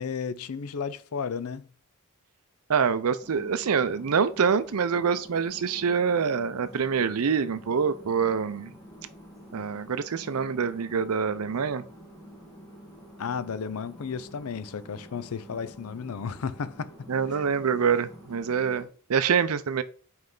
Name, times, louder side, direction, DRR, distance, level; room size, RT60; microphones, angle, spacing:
voice 1, 0.0-1.7 13.2-17.4, left 6 dB, 70° left, 0.5 m, -34 dB
voice 2, 2.7-8.7 9.5-11.8 17.1-19.8, right 6 dB, 70° right, 0.5 m, -25 dB
sound 1, 3.2-18.9, equal, 15° left, 1.6 m, -48 dB
5.4 x 4.7 x 3.9 m
head